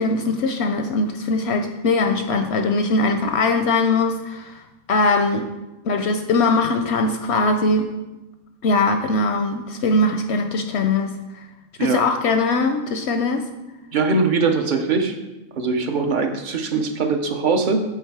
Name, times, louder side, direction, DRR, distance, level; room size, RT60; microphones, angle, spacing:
voice 1, 0.0-4.6 4.9-5.5 5.8-7.9 8.6-11.1 11.8-13.5, left 3 dB, 65° left, 6 dB, 0.7 m, -21 dB
voice 2, 13.9-15.1 15.6-17.8, right 4 dB, 45° right, 5 dB, 0.7 m, -21 dB
8.2 x 4.2 x 4.6 m, 1.0 s
omnidirectional pair, 1.4 m